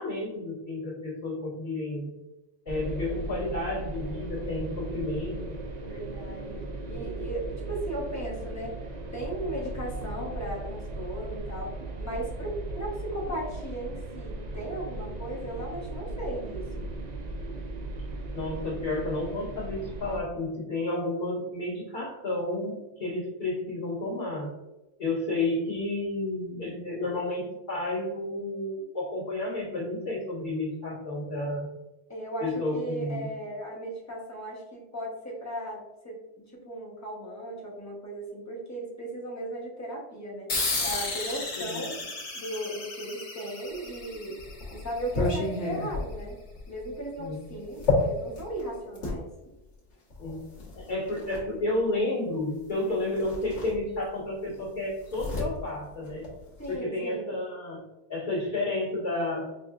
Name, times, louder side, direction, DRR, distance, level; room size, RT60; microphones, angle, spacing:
voice 1, 0.0-2.1 2.6-5.4 18.3-24.5 25.0-31.7 32.4-33.3 41.5-41.9 47.2-47.4 50.2-50.5 50.7-56.2 56.7-57.8 58.1-59.4, left 2 dB, 45° left, -8 dB, 1.8 m, -31 dB
sound 1, 2.7-20.2, right 2 dB, 55° right, 0.5 m, -37 dB
voice 2, 5.8-6.6 6.9-16.9 32.1-42.0 42.3-44.4 44.7-46.4 46.7-49.3 56.6-57.3, right 1 dB, 15° left, -4 dB, 1.0 m, -36 dB
sound 2, 40.5-45.5, left 3 dB, 65° left, 1.2 m, -34 dB
sound 3, 43.9-49.2 50.1-51.5 52.7-52.8 53.1-54.3 54.5-56.8, left 3 dB, 85° left, 1.5 m, -32 dB
5.2 x 2.6 x 2.4 m, 1.0 s
omnidirectional pair, 1.2 m